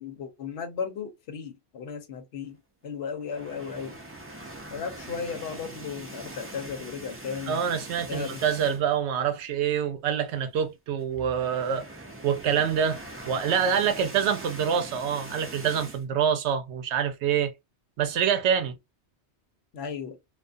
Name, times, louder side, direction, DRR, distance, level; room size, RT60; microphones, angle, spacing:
voice 1, 0.0-2.6 2.8-4.0 4.7-7.6 8.0-8.4 19.7-20.2, left 6 dB, 70° left, 0.9 m, -35 dB
sound 1, 3.2-9.0 9.4-9.6 9.8-9.9 11.0-16.0, right 1 dB, 20° right, 0.3 m, -42 dB
voice 2, 7.5-11.9 12.2-17.5 18.0-18.8, right 8 dB, 80° right, 0.9 m, -26 dB
2.4 x 2.3 x 2.4 m
omnidirectional pair, 1.1 m